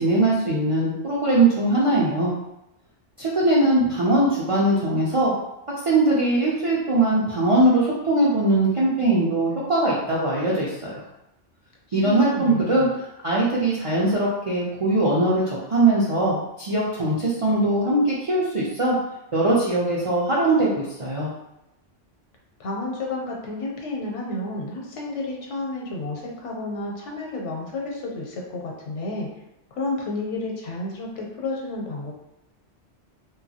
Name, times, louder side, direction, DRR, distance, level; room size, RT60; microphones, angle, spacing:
voice 1, 0.0-2.3 3.2-5.3 5.8-10.7 11.9-19.0 19.3-21.3, right 2 dB, 60° right, -6 dB, 0.3 m, -21 dB
voice 2, 11.9-12.9 22.6-29.3 29.7-32.1, left 2 dB, 80° left, -1 dB, 1.0 m, -31 dB
2.9 x 2.2 x 2.7 m, 0.88 s
omnidirectional pair, 1.2 m